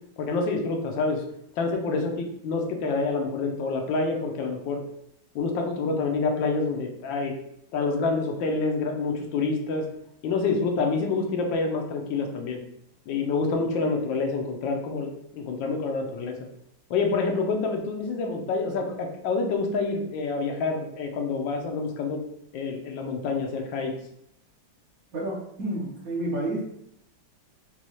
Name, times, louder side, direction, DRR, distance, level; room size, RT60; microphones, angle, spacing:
voice 1, 0.2-1.2 1.6-4.8 5.3-7.3 7.7-9.9 10.2-12.6 13.1-16.4 16.9-22.2 22.5-23.9, left 4 dB, 75° left, 3 dB, 1.3 m, -27 dB
voice 2, 25.1-26.6, right 1 dB, 55° right, -3 dB, 1.1 m, -30 dB
5.4 x 2.3 x 3.0 m, 0.78 s
omnidirectional pair, 2.1 m